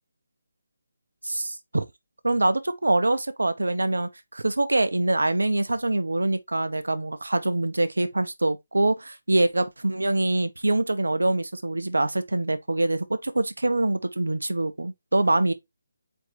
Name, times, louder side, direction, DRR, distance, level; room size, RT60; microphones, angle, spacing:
voice 1, 1.2-1.8 2.2-15.5, right 2 dB, 85° right, 0.8 m, -24 dB
4.4 x 2.9 x 4.1 m
figure-of-eight pair, 155°, 0 cm